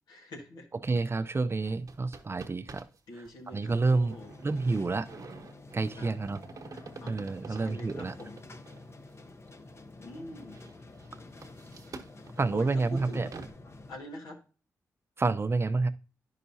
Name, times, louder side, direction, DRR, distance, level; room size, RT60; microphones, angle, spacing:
voice 1, 0.1-0.7 3.1-4.3 6.0-6.1 7.0-7.1 7.4-8.4 10.0-10.6 12.5-13.3 13.9-14.4, left 1 dB, 85° left, 1.6 m, -44 dB
voice 2, 0.8-2.8 3.2-4.2 4.4-5.1 5.7-6.4 7.1-8.1 12.4-13.3 15.2-15.9, right 3 dB, 35° right, 0.6 m, -29 dB
sound 1, 1.6-3.0 3.3-3.4 4.1-8.9 9.5-9.6 10.2-13.5, right 4 dB, 55° right, 1.1 m, -48 dB
sound 2, 3.7-14.0, left 2 dB, 40° left, 0.8 m, -49 dB
9.9 x 5.7 x 2.7 m
supercardioid pair, 50°, 7 cm